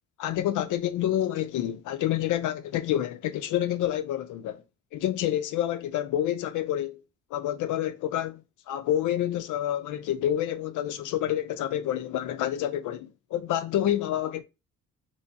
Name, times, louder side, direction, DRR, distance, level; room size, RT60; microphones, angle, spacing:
voice 1, 0.2-4.6 4.9-7.0 7.3-8.4 8.7-14.4, left 11 dB, 80° left, 0.5 m, -28 dB
3.1 x 2.8 x 4.5 m
cardioid pair, 90°, 30 cm